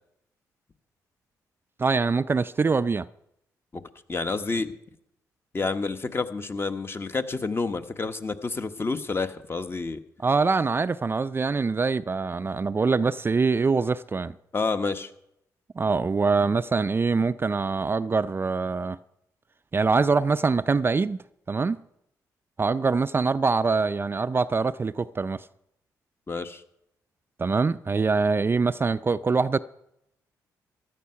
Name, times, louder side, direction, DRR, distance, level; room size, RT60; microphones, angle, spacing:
voice 1, 1.8-3.1 10.2-14.3 15.8-19.0 19.7-21.2 21.5-21.8 22.6-25.5 27.4-29.6, right 4 dB, 30° right, 0.4 m, -24 dB
voice 2, 4.1-4.7 5.5-10.0 14.5-15.1 26.3-26.6, left 4 dB, 35° left, 1.2 m, -29 dB
15.5 x 11.5 x 5.7 m
supercardioid pair, 60°, 7 cm